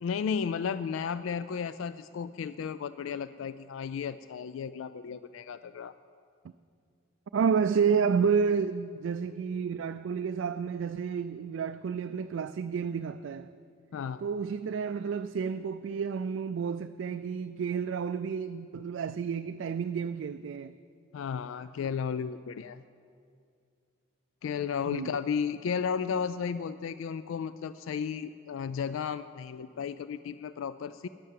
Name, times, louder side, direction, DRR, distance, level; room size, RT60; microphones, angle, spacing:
voice 1, 0.0-5.9 13.9-14.2 21.1-22.8 24.4-31.1, left 6 dB, 85° left, 0.3 m, -34 dB
voice 2, 7.3-13.5 14.2-20.7 24.8-25.1, right 6 dB, 75° right, 0.3 m, -30 dB
12.0 x 10.5 x 7.5 m
head